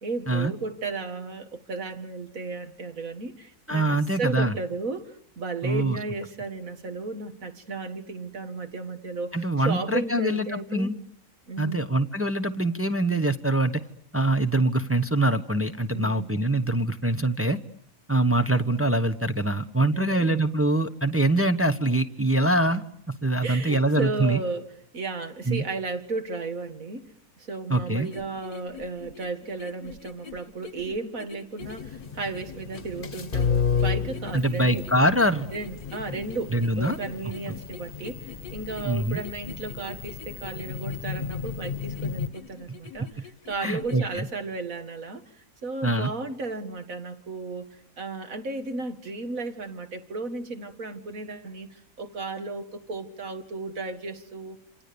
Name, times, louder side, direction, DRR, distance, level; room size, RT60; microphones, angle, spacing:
voice 1, 0.0-10.9 11.5-11.8 15.9-16.3 19.9-20.4 23.4-24.6 24.9-27.1 27.4-34.8 35.5-45.2 45.6-47.7 48.0-54.6, right 3 dB, 60° right, 2.3 m, -34 dB
voice 2, 3.7-4.5 5.6-6.0 9.3-10.9 11.6-13.8 14.1-17.6 18.1-24.4 25.5-25.6 27.7-28.1 34.3-35.5 36.5-37.0 38.9-39.2 43.6-44.3 45.8-46.1, right 1 dB, 10° right, 0.8 m, -24 dB
sound 1, 27.7-44.2, left 7 dB, 70° left, 1.8 m, -46 dB
sound 2, 31.6-42.3, left 6 dB, 35° left, 1.4 m, -32 dB
27.5 x 27.0 x 6.9 m
omnidirectional pair, 1.6 m